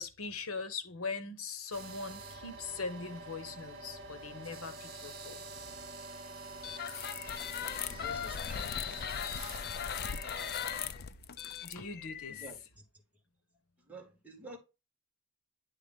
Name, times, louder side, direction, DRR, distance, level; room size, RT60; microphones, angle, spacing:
voice 1, 0.0-5.4 11.6-12.4, left 4 dB, 85° left, 1.1 m, -41 dB
sound 1, 1.7-10.9, right 3 dB, 45° right, 2.2 m, -47 dB
sound 2, 6.6-12.5, left 8 dB, 50° left, 0.4 m, -38 dB
voice 2, 7.9-8.8 11.4-11.6 12.3-12.6 13.9-14.6, equal, 5° right, 2.0 m, -49 dB
10.0 x 3.5 x 3.6 m
head